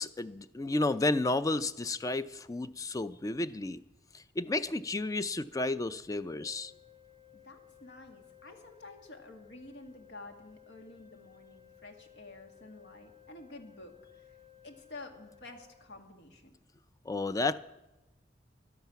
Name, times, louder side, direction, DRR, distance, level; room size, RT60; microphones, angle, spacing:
voice 1, 0.0-3.8 4.4-6.7 17.1-17.6, left 2 dB, 20° left, 14 dB, 0.4 m, -32 dB
sound 1, 6.2-15.9, left 12 dB, 40° left, 1.3 m, -58 dB
voice 2, 7.3-14.4 14.6-16.6, left 2 dB, 80° left, 5 dB, 1.7 m, -50 dB
14.0 x 11.5 x 5.8 m, 1.0 s
head